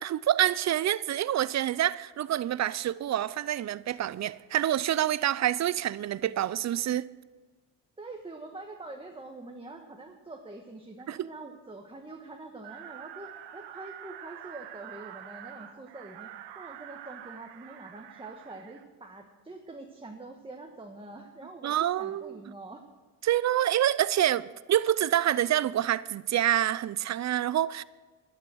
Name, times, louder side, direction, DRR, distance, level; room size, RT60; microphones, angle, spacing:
voice 1, 0.0-7.1 11.1-11.2 21.6-22.4 23.2-27.8, right 12 dB, 40° right, 0.5 m, -27 dB
voice 2, 8.0-16.3 16.5-22.8 23.6-23.7, right 2 dB, 15° right, 1.3 m, -45 dB
sound 1, 12.6-18.8, right 11 dB, 85° right, 1.1 m, -46 dB
11.5 x 11.0 x 6.2 m
supercardioid pair, 80°, 41 cm